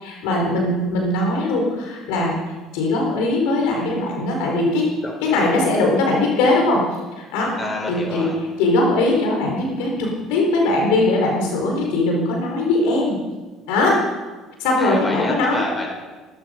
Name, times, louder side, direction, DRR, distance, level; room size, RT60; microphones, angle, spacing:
voice 1, 0.0-2.3 2.7-4.9 5.2-6.8 7.2-7.5 7.9-13.2 13.7-14.0 14.6-15.6, left 2 dB, 80° left, 0 dB, 4.5 m, -20 dB
voice 2, 5.0-5.7 7.6-8.4 14.8-15.9, left 1 dB, 15° left, 0 dB, 6.6 m, -28 dB
18.5 x 13.5 x 5.3 m, 1.3 s
supercardioid pair, 75°, 0 cm